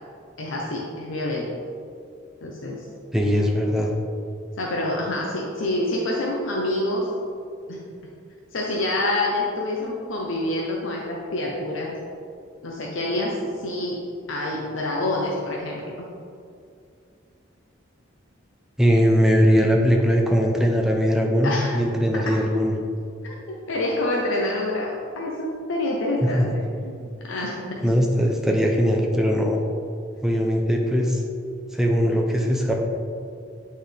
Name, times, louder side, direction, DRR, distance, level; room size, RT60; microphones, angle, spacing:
voice 1, 0.4-1.5 2.4-2.8 4.6-7.1 7.7-7.8 8.5-11.9 12.6-14.0 14.3-16.1 21.4-21.7 22.2-22.4 23.2-27.0 27.2-27.9, left 1 dB, 85° left, -2 dB, 0.7 m, -27 dB
voice 2, 3.1-3.9 18.8-22.7 26.2-26.5 27.8-29.6 30.2-31.2 31.7-32.7, equal, ahead, 0 dB, 0.5 m, -20 dB
8.5 x 4.2 x 3.3 m, 2.4 s
head